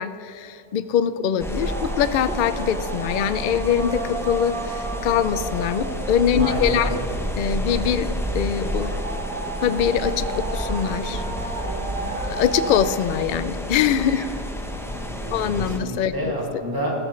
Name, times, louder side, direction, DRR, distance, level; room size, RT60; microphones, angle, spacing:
voice 1, 0.0-6.9 7.4-8.9 9.6-11.2 12.3-14.3 15.3-16.3, left 8 dB, 80° left, 12 dB, 0.4 m, -23 dB
sound 1, 1.4-15.8, equal, 5° left, 0.5 m, -30 dB
sound 2, 1.6-12.9, right 3 dB, 80° right, 2.0 m, -33 dB
voice 2, 6.4-7.0 7.6-7.7 14.8-16.9, equal, 15° right, -4 dB, 2.5 m, -30 dB
15.5 x 13.0 x 3.2 m, 2.7 s
omnidirectional pair, 1.4 m